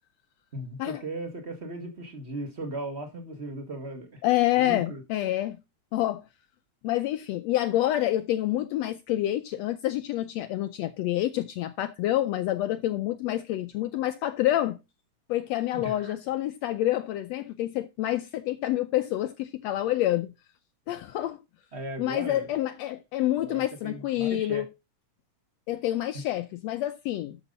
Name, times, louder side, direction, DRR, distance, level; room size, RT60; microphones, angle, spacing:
voice 1, 0.5-4.2 4.6-5.0 15.7-16.2 21.7-22.5 23.5-24.6, right 1 dB, 25° right, 1.7 m, -37 dB
voice 2, 4.2-5.6 5.9-6.3 6.8-14.8 15.3-20.3 20.9-21.4 22.0-24.7 25.7-27.4, left 14 dB, 75° left, 1.6 m, -27 dB
12.5 x 6.4 x 3.9 m
omnidirectional pair, 3.4 m